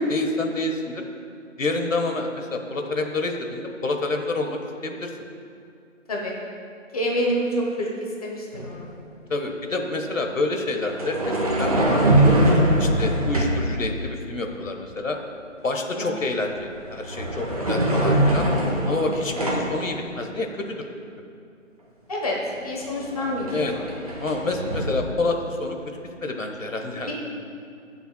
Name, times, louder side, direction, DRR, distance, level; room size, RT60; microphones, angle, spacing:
voice 1, 0.1-1.0 1.6-5.1 9.3-12.4 12.8-15.2 15.6-18.5 18.9-20.8 23.5-23.7 24.2-27.1, left 2 dB, 80° left, 3 dB, 1.3 m, -28 dB
voice 2, 6.9-7.9 8.2-8.9 16.0-16.1 22.1-22.4 22.6-23.8 27.1-27.2, equal, 30° left, -2 dB, 1.1 m, -27 dB
sound 1, 8.5-8.7 10.8-13.7 16.4-16.6 17.0-19.8 22.2-22.3 22.6-24.9, right 1 dB, 30° right, 0.9 m, -22 dB
19.0 x 6.9 x 2.3 m, 2.5 s
figure-of-eight pair, 160°, 38 cm